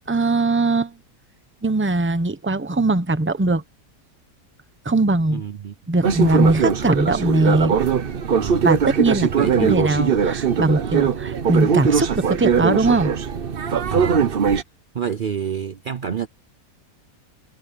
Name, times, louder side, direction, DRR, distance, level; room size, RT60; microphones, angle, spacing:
voice 1, 0.1-0.9 1.6-3.6 4.8-5.4 5.9-7.7 8.6-13.1, right 2 dB, 10° right, 0.6 m, -20 dB
voice 2, 5.3-5.7 8.4-8.7 9.3-10.1 13.9-14.3 14.9-16.3, right 8 dB, 75° right, 0.4 m, -28 dB
sound 1, 6.0-14.6, right 6 dB, 45° right, 0.8 m, -20 dB
omnidirectional pair, 1.9 m